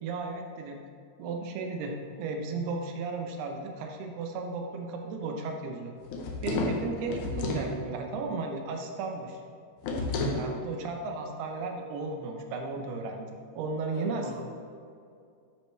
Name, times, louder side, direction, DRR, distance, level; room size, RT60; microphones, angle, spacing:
voice 1, 0.0-0.8 1.2-5.9 6.4-9.4 10.3-14.3, right 3 dB, 75° right, 3 dB, 2.8 m, -35 dB
sound 1, 6.0-7.7 9.8-10.5, left 2 dB, 75° left, 1.8 m, -31 dB
voice 2, 13.9-14.3, right 1 dB, 40° right, -9 dB, 1.7 m, -42 dB
10.5 x 8.7 x 3.3 m, 2.4 s
omnidirectional pair, 4.8 m